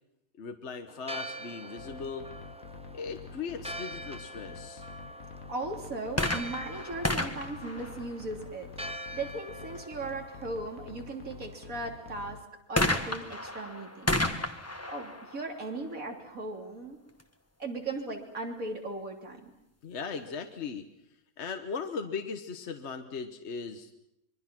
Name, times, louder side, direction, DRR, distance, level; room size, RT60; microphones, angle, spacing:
voice 1, 0.4-2.3 2.9-4.9 19.8-20.9 21.4-23.9, left 5 dB, 55° left, 6 dB, 1.4 m, -38 dB
Church bell, 0.9-12.4, equal, 5° right, 0.6 m, -44 dB
sound 1, 1.8-12.4, left 5 dB, 85° left, 1.6 m, -48 dB
voice 2, 5.5-8.7 9.1-12.4 12.7-14.2 14.9-17.0 17.6-19.5, right 2 dB, 75° right, 1 dB, 3.6 m, -37 dB
sound 2, 6.1-8.7 12.8-16.4 17.2-17.3, left 1 dB, 10° left, 1.3 m, -32 dB
26.0 x 22.5 x 6.0 m, 0.86 s
omnidirectional pair, 1.4 m